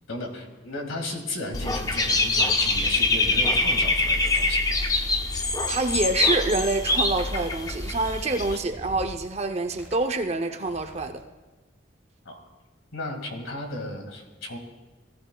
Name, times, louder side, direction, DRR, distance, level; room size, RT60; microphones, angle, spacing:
voice 1, 0.1-4.7 12.3-12.4 12.9-14.6, left 2 dB, 80° left, 3 dB, 2.0 m, -34 dB
Dog / Bird, 1.5-8.6, left 2 dB, 20° left, 0.5 m, -24 dB
voice 2, 5.7-11.2, right 2 dB, 30° right, 6 dB, 0.6 m, -26 dB
sound 1, 7.3-9.2 9.6-10.3 10.6-11.2, equal, 10° right, 1.4 m, -46 dB
18.0 x 13.5 x 2.3 m, 1.2 s
head